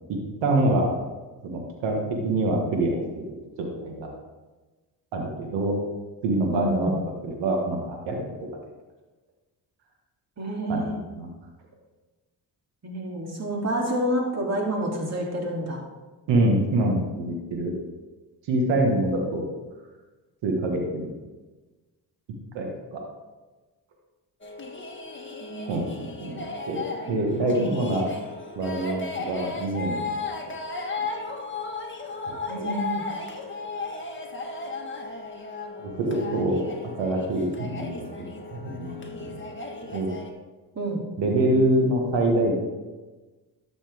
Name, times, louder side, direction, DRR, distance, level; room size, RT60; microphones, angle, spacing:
voice 1, 0.4-0.9 1.4-3.3 3.6-4.1 5.1-5.8 6.2-8.2 10.7-10.9 11.1-11.3 16.3-17.8 18.5-19.4 20.4-21.1 22.5-23.0 25.6-28.1 28.5-30.2 30.5-30.6 32.6-32.7 35.8-36.6 37.0-38.3 38.5-39.4 39.8-40.1 41.2-42.6, right 1 dB, 85° right, 1 dB, 1.7 m, -25 dB
voice 2, 6.5-7.0 10.4-11.0 12.8-15.8 25.4-25.8 27.5-27.8 32.5-33.0 40.7-41.1, right 1 dB, 35° right, -1 dB, 3.0 m, -28 dB
sound 1, 24.4-40.3, left 3 dB, 25° left, 1.6 m, -35 dB
12.5 x 7.2 x 3.6 m, 1.2 s
cardioid pair, 70°, 43 cm